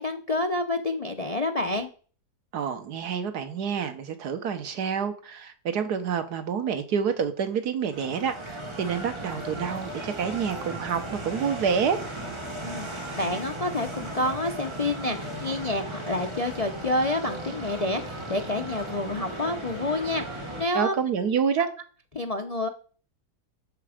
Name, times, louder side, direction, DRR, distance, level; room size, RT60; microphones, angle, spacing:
voice 1, 0.0-1.9 12.6-21.0 22.1-22.7, left 2 dB, 40° left, 0.5 m, -28 dB
voice 2, 2.5-12.0 20.7-21.7, right 7 dB, 75° right, 1.6 m, -28 dB
sound 1, 7.9-20.6, right 1 dB, 20° right, 1.5 m, -36 dB
10.0 x 7.1 x 5.0 m
omnidirectional pair, 1.7 m